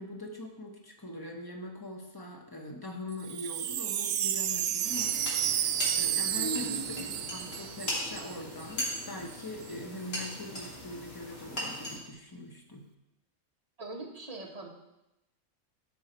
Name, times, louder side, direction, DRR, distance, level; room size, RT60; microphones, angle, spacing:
voice 1, 0.0-5.6 6.0-12.8, left 1 dB, 20° left, 1 dB, 1.1 m, -42 dB
Wind chime, 3.1-8.3 8.6-8.7 8.9-9.4, right 10 dB, 75° right, 0.9 m, -31 dB
sound 1, 4.8-12.0, left 1 dB, 70° left, 2.9 m, -39 dB
voice 2, 6.3-7.3 13.8-14.7, right 2 dB, 25° right, -1 dB, 1.5 m, -39 dB
12.0 x 5.6 x 4.4 m, 0.90 s
omnidirectional pair, 1.4 m